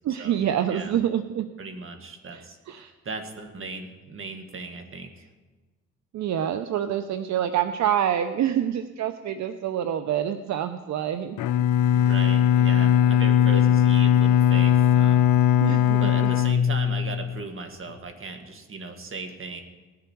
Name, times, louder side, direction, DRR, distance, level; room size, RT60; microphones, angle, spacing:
voice 1, 0.0-1.5 2.3-2.9 6.1-11.6 15.6-16.3, right 10 dB, 70° right, 10 dB, 0.7 m, -27 dB
voice 2, 1.6-5.3 11.9-15.6 16.0-19.6, right 3 dB, 45° right, 5 dB, 2.0 m, -37 dB
Bowed string instrument, 11.4-17.4, left 9 dB, 80° left, 0.5 m, -19 dB
18.0 x 10.5 x 4.6 m, 1.3 s
cardioid pair, 75°, 29 cm